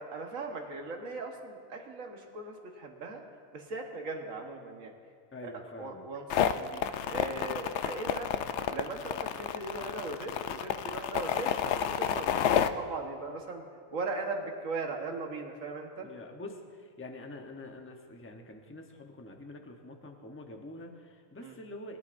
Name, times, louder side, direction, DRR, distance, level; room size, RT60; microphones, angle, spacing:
voice 1, 0.0-3.2 3.5-4.9 5.4-8.3 8.7-13.6 13.9-16.1 21.4-21.6, right 3 dB, 80° right, 2 dB, 1.7 m, -39 dB
voice 2, 5.3-6.0 16.0-22.0, left 2 dB, 10° left, 3 dB, 0.8 m, -46 dB
sound 1, 6.3-12.7, left 9 dB, 65° left, 0.8 m, -30 dB
21.0 x 12.0 x 2.6 m, 2.1 s
omnidirectional pair, 1.4 m